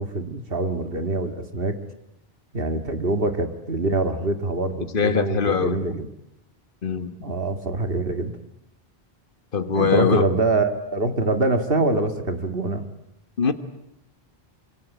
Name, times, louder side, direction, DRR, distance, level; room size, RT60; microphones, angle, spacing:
voice 1, 0.0-1.8 2.5-6.1 7.2-8.3 9.7-12.9, right 2 dB, 65° right, 2.1 m, -24 dB
voice 2, 4.9-5.8 6.8-7.2 9.5-10.2 13.4-13.5, left 6 dB, 55° left, 1.7 m, -22 dB
26.0 x 24.5 x 9.2 m
omnidirectional pair, 1.0 m